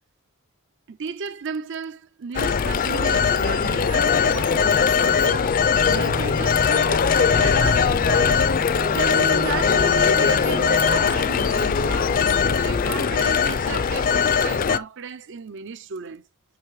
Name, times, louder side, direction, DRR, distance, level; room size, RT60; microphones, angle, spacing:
voice 1, 0.9-8.5 8.9-12.3 12.6-16.2, right 6 dB, 60° right, 0.6 m, -34 dB
Telephone, 2.3-14.8, left 6 dB, 40° left, 0.4 m, -20 dB
sound 1, 3.6-11.4, right 2 dB, 35° right, 0.8 m, -35 dB
9.6 x 3.3 x 4.8 m
head